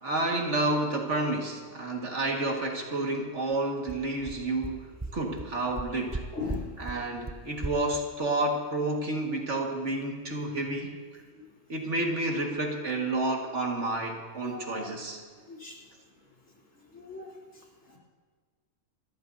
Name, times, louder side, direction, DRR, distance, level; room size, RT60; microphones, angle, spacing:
voice 1, 0.0-6.2 6.8-11.2 11.7-15.2, right 2 dB, 65° right, 0 dB, 2.2 m, -30 dB
sound 1, 3.9-4.0 4.3-4.4 4.6-4.7 5.0-5.1 5.4-5.5 5.7-6.2 6.5-6.6 6.9-7.0 7.3-7.4 7.6-7.7, right 2 dB, 20° right, 0.5 m, -34 dB
voice 2, 6.3-6.7 11.3-11.4 14.4-14.9 15.5-15.8 16.9-17.3, left 4 dB, 80° left, -4 dB, 3.6 m, -38 dB
27.5 x 14.0 x 2.8 m, 1.5 s
omnidirectional pair, 1.3 m